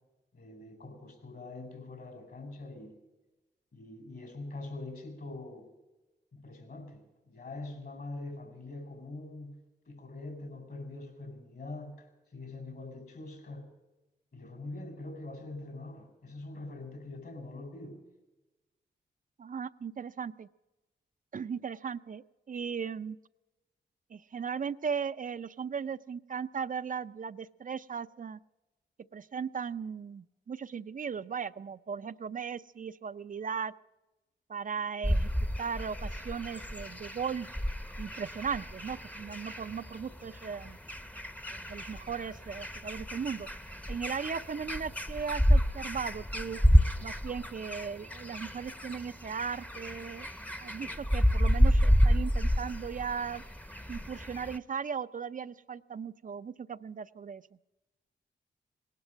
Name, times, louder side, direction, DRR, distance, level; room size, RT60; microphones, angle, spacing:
voice 1, 0.3-3.0 3.7-5.7 6.3-9.6 9.9-13.7 14.3-18.0, left 2 dB, 60° left, 6 dB, 4.7 m, -44 dB
voice 2, 19.4-20.5 21.3-23.2 24.1-28.4 29.1-33.7 34.5-35.3 35.6-37.5 38.0-40.8 41.5-43.5 43.9-46.6 47.0-50.3 50.6-53.4 53.9-57.4, right 6 dB, 45° right, 12 dB, 0.5 m, -37 dB
sound 1, 35.0-54.6, equal, 10° left, 0.8 m, -30 dB
18.5 x 12.0 x 6.3 m, 1.1 s
cardioid pair, 60°, 19 cm